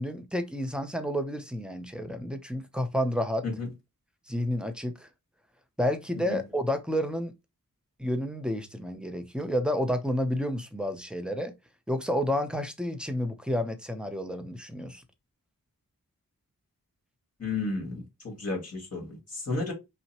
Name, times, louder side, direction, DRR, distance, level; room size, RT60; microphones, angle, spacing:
voice 1, 0.0-3.4 4.3-5.1 5.8-7.3 8.0-11.5 11.9-15.0, equal, 5° right, 0.7 m, -30 dB
voice 2, 17.4-19.7, left 3 dB, 45° left, 2.2 m, -33 dB
5.5 x 2.2 x 2.9 m
wide cardioid pair, 70°, 34 cm